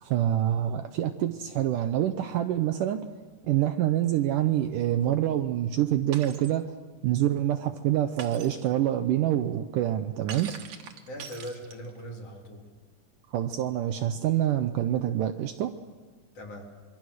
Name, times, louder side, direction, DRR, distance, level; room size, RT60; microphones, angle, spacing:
voice 1, 0.0-3.1 3.5-6.7 7.0-10.5 13.3-15.7, right 12 dB, 75° right, 7 dB, 2.1 m, -26 dB
Shatter, 6.1-6.6 8.2-8.7 10.3-12.0, right 7 dB, 60° right, 2.4 m, -42 dB
voice 2, 11.1-12.7 16.3-16.6, equal, 45° left, -1 dB, 4.1 m, -40 dB
25.0 x 23.5 x 6.4 m, 1.4 s
omnidirectional pair, 4.3 m